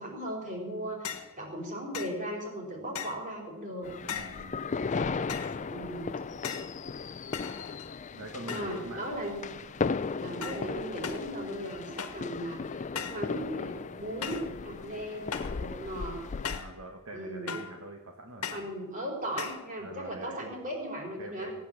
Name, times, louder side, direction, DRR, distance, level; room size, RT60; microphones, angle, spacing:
voice 1, 0.0-3.9 5.7-6.1 8.4-9.4 10.2-16.2 17.1-17.5 18.5-21.5, right 1 dB, 40° right, 0 dB, 4.5 m, -37 dB
sound 1, 1.0-1.3 1.9-2.2 2.9-3.3 4.1-4.4 5.3-5.6 6.4-6.8 7.3-8.0 8.5-8.9 9.2-9.6 10.4-10.7 11.0-11.3 12.0-12.3 12.9-13.3 14.2-14.5 15.3-15.6 16.4-16.8 17.5-17.8 18.4-18.7 19.4-19.7, left 7 dB, 80° left, 1.4 m, -38 dB
sound 2, 3.8-16.6, left 4 dB, 35° left, 0.4 m, -36 dB
voice 2, 4.1-4.6 8.1-9.0 15.8-15.9 16.5-18.6 19.8-20.6 21.2-21.5, right 2 dB, 65° right, 3 dB, 1.3 m, -44 dB
17.5 x 9.4 x 7.6 m, 1.2 s
head